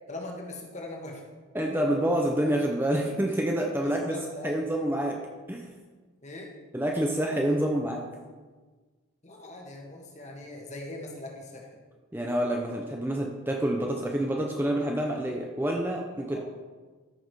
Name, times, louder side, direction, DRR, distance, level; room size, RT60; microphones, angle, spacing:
voice 1, 0.1-1.2 3.8-4.6 6.2-6.5 9.2-11.7 16.3-16.4, left 2 dB, 35° left, 0 dB, 1.7 m, -40 dB
voice 2, 1.5-4.2 4.4-5.2 5.5-5.7 6.7-8.1 12.1-16.4, right 1 dB, 10° right, 1 dB, 0.7 m, -27 dB
13.5 x 6.2 x 4.8 m, 1.4 s
head